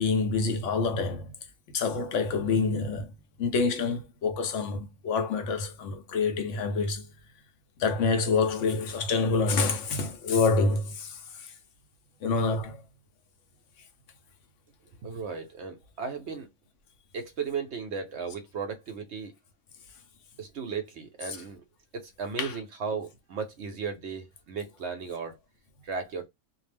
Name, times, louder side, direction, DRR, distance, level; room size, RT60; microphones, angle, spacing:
voice 1, 0.0-1.3 1.7-3.1 3.4-7.1 7.8-11.5 12.2-12.8 22.4-22.5, left 4 dB, 70° left, 0.9 m, -27 dB
voice 2, 15.0-16.5 17.1-19.3 20.4-21.6 21.9-25.4 25.8-26.3, right 5 dB, 65° right, 0.8 m, -35 dB
2.5 x 2.0 x 3.2 m
omnidirectional pair, 1.4 m